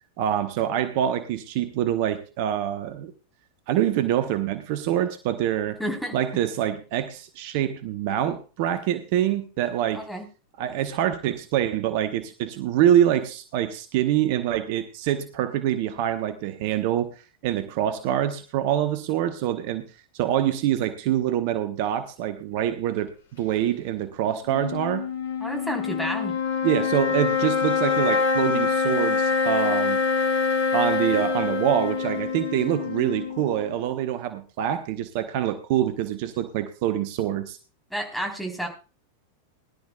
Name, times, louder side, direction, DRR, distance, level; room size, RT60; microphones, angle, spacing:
voice 1, 0.2-3.1 3.7-5.8 6.1-10.1 10.6-17.1 17.4-25.1 26.6-30.0 30.7-37.6, right 11 dB, 45° right, 9 dB, 1.0 m, -25 dB
voice 2, 5.8-6.2 9.9-10.2 25.4-26.3 37.9-38.7, equal, ahead, 1 dB, 3.6 m, -30 dB
sound 1, 24.5-33.9, left 5 dB, 60° left, 1.8 m, -25 dB
20.5 x 11.5 x 2.3 m, 0.33 s
figure-of-eight pair, 90°, 0 cm